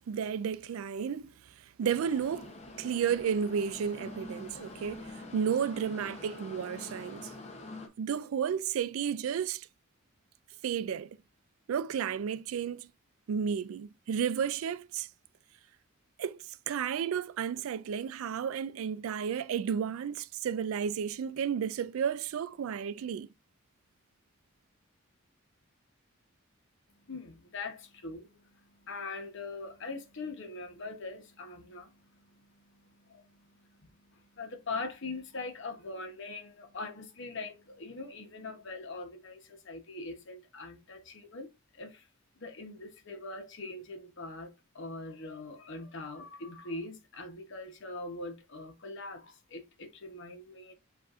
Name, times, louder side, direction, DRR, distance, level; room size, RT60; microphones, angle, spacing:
voice 1, 0.1-2.5 2.8-7.3 8.0-9.7 10.6-11.2 11.7-12.9 13.3-15.1 16.2-23.3, right 7 dB, 75° right, 0.3 m, -32 dB
sound 1, 1.8-7.9, left 2 dB, 30° left, 0.7 m, -46 dB
voice 2, 26.9-42.1 42.4-50.7, left 3 dB, 60° left, 0.9 m, -42 dB
7.6 x 2.6 x 2.4 m
head